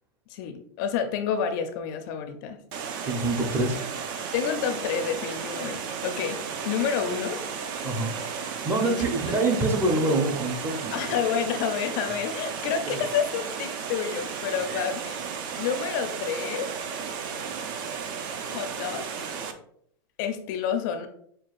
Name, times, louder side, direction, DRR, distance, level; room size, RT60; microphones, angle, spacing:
voice 1, 0.3-2.6 4.3-6.4 6.6-7.4 8.8-9.0 10.9-15.2 15.6-16.7 18.5-19.2 20.2-21.1, left 7 dB, 55° left, 9 dB, 0.4 m, -29 dB
Water, 2.7-19.5, right 6 dB, 55° right, 0.5 m, -34 dB
voice 2, 3.0-3.8 7.8-8.1 8.6-10.9 12.9-13.0 14.6-14.8, right 2 dB, 20° right, 3 dB, 0.7 m, -25 dB
6.1 x 2.3 x 2.4 m, 0.67 s
supercardioid pair, 130°, 13 cm